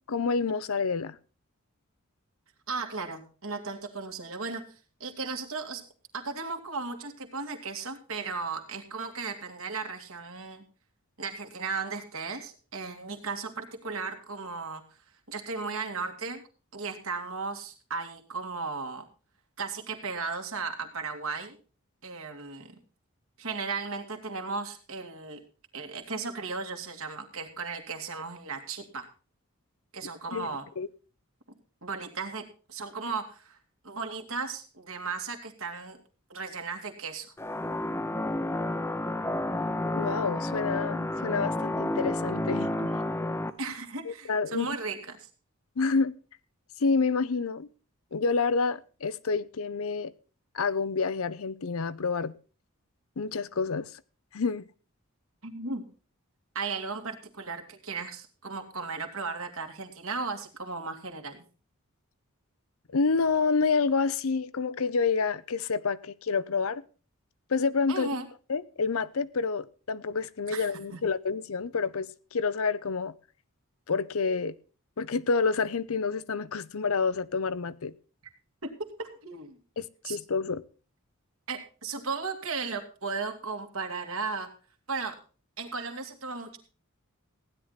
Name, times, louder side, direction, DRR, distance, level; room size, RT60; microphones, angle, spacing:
voice 1, 0.1-1.2 30.0-30.5 30.8-30.9 39.9-42.9 44.0-44.7 45.8-46.2 46.8-47.7 48.1-50.1 50.5-52.3 53.2-53.9 54.3-54.6 62.9-66.8 67.5-68.1 68.5-73.1 73.9-74.5 75.0-77.9 79.8-80.6, left 4 dB, 70° left, 0.6 m, -28 dB
voice 2, 2.7-4.6 5.0-5.8 6.1-10.6 11.2-14.8 15.3-16.4 16.7-19.1 19.6-21.6 22.0-22.8 23.4-25.4 25.7-29.1 29.9-30.7 31.8-33.6 33.8-36.0 36.3-37.3 43.6-45.3 55.4-55.9 56.5-61.4 67.9-68.3 70.5-70.7 70.9-71.0 78.6-79.6 80.0-80.2 81.5-84.5 84.9-85.2 85.6-86.6, right 4 dB, 65° right, 2.4 m, -36 dB
sound 1, 37.4-43.5, left 1 dB, 10° left, 0.7 m, -30 dB
16.0 x 10.0 x 4.1 m
head